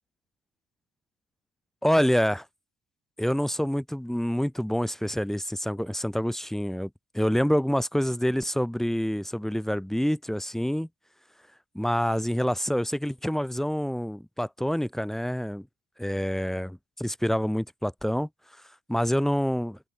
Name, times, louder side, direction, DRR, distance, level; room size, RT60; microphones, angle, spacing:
voice 1, 1.8-2.4 3.2-6.9 7.1-10.9 11.7-15.7 16.0-18.3 18.9-19.8, equal, ahead, 3.9 m, -27 dB
open air
cardioid pair, 110°, 17 cm